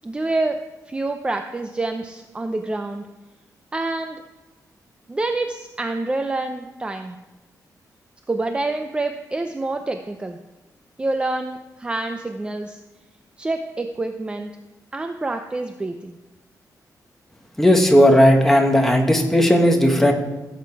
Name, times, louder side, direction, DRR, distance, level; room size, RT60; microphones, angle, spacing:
voice 1, 0.0-0.6 0.9-3.0 3.7-4.2 5.1-7.2 8.3-10.4 11.0-12.8 13.4-14.5 14.9-16.2, right 2 dB, 15° right, 6 dB, 0.6 m, -27 dB
voice 2, 17.6-20.1, equal, 5° left, 2 dB, 1.5 m, -15 dB
16.5 x 8.1 x 4.7 m, 1.1 s
wide cardioid pair, 160°, 7 cm